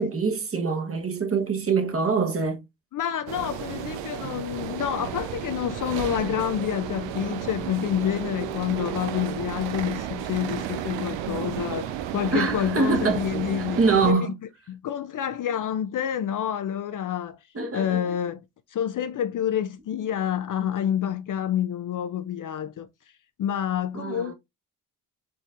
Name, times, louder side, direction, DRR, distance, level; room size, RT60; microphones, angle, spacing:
voice 1, 0.0-2.6 12.3-13.3 13.6-14.4 17.5-18.1 23.9-24.3, right 4 dB, 30° right, 1.1 m, -24 dB
voice 2, 2.9-14.3 14.7-17.4 17.7-18.4 18.7-22.9 23.4-24.3, left 10 dB, 45° left, 0.5 m, -28 dB
sound 1, 3.3-14.1, right 10 dB, 70° right, 0.8 m, -33 dB
4.5 x 3.4 x 2.5 m
supercardioid pair, 70°, 46 cm